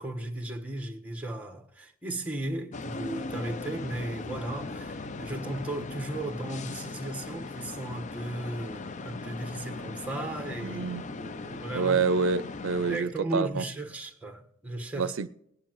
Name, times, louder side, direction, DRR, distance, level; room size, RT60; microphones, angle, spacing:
voice 1, 0.0-12.0 12.9-15.2, right 1 dB, 5° right, 1.2 m, -36 dB
sound 1, 2.7-13.0, left 3 dB, 35° left, 0.4 m, -39 dB
voice 2, 10.6-11.0 11.7-13.6 15.0-15.3, right 4 dB, 70° right, 0.5 m, -27 dB
19.5 x 10.0 x 3.0 m
head